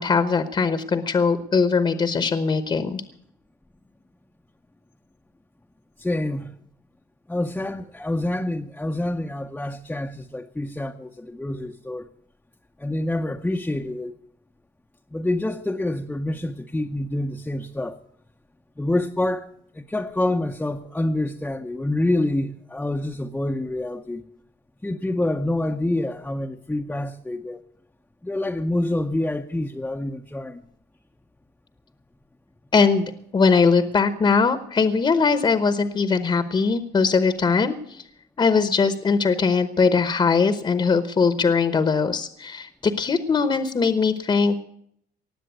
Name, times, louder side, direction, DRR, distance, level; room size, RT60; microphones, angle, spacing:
voice 1, 0.0-3.0 32.7-38.0 38.4-44.6, left 5 dB, 30° left, 1.0 m, -21 dB
voice 2, 6.0-6.5 7.3-12.1 12.8-14.2 15.1-18.0 18.8-19.5 19.7-24.2 24.8-27.6 28.2-30.6, left 1 dB, 10° left, 0.7 m, -27 dB
18.5 x 7.6 x 9.3 m
cardioid pair, 110°, 17 cm